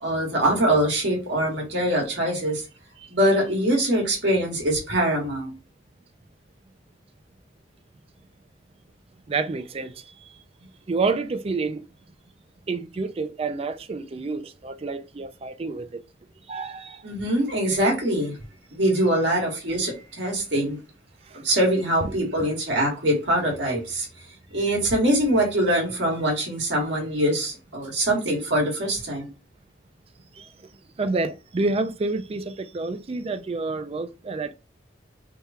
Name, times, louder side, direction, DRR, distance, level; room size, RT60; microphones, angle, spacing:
voice 1, 0.0-2.6 3.1-5.5 17.0-18.4 18.7-20.8 21.3-24.1 24.5-29.3, right 1 dB, 65° right, 1.7 m, -23 dB
voice 2, 9.3-9.9 10.3-10.4 10.9-11.8 12.7-16.0 16.5-17.0 22.0-22.2 30.4-30.5 31.0-34.5, right 3 dB, 30° right, 0.3 m, -28 dB
3.5 x 2.3 x 4.2 m
head